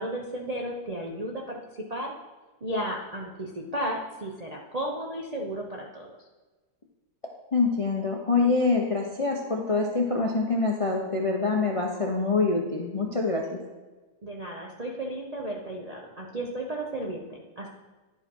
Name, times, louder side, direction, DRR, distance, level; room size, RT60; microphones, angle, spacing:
voice 1, 0.0-1.6 1.9-2.1 2.6-6.1 14.2-17.7, right 1 dB, 50° right, -2 dB, 0.4 m, -34 dB
voice 2, 7.5-13.6, left 3 dB, 40° left, 0 dB, 0.4 m, -25 dB
11.0 x 5.2 x 5.4 m, 1.2 s
omnidirectional pair, 2.1 m